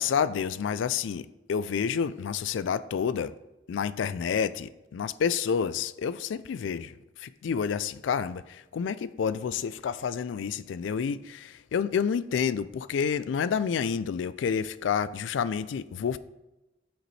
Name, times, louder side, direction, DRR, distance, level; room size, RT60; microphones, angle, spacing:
voice 1, 0.0-3.3 3.7-6.9 7.2-16.2, left 7 dB, 85° left, 0.3 m, -29 dB
8.9 x 5.1 x 3.2 m
head